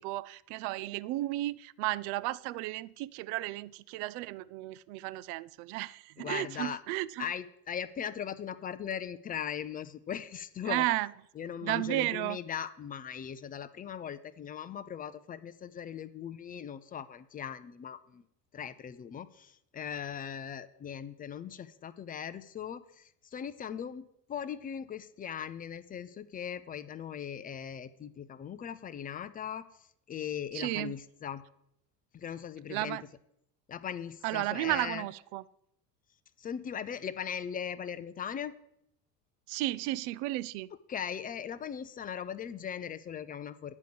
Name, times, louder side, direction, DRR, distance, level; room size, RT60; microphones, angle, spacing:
voice 1, 0.0-7.3 10.7-11.1 11.6-12.4 30.5-30.9 32.7-33.0 34.2-35.4 39.5-40.7, right 17 dB, 60° right, 0.5 m, -33 dB
voice 2, 6.2-6.8 7.2-10.9 11.4-18.2 18.5-29.6 30.1-31.4 32.1-33.0 33.7-35.0 36.4-38.5 40.9-43.7, left 8 dB, 20° left, 0.4 m, -39 dB
9.3 x 5.1 x 6.9 m
hypercardioid pair, 90°, 46 cm